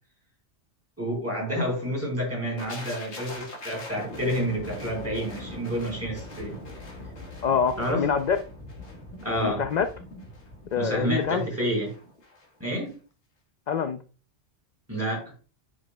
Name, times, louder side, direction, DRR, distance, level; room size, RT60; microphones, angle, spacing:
voice 1, 1.0-6.6 7.8-8.1 9.2-9.7 10.8-12.0 12.6-12.9 14.9-15.3, equal, 10° right, 3.4 m, -29 dB
sound 1, 2.6-12.5 12.7-12.9, left 1 dB, 75° left, 1.8 m, -41 dB
voice 2, 7.4-8.4 9.4-9.9 10.7-11.5 13.7-14.0, left 6 dB, 55° left, 0.5 m, -25 dB
10.0 x 5.0 x 2.2 m
omnidirectional pair, 1.2 m